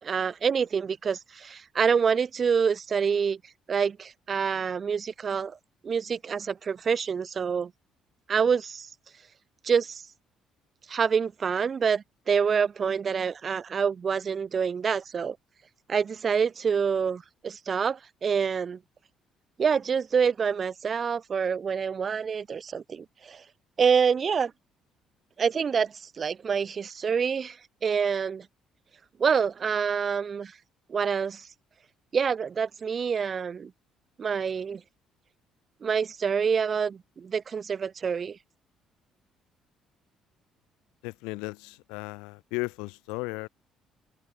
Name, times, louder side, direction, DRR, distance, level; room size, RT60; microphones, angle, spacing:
voice 1, 0.0-3.4 3.7-5.6 5.8-7.7 8.3-8.9 9.6-10.0 10.9-15.4 15.9-18.8 19.6-23.4 23.8-24.5 25.4-27.6 27.8-28.5 29.2-30.5 30.9-31.5 32.1-33.7 34.2-34.8 35.8-38.4, right 6 dB, 45° right, 3.0 m, -26 dB
voice 2, 41.0-43.5, left 27 dB, 90° left, 1.4 m, -35 dB
supercardioid pair, 70°, 0 cm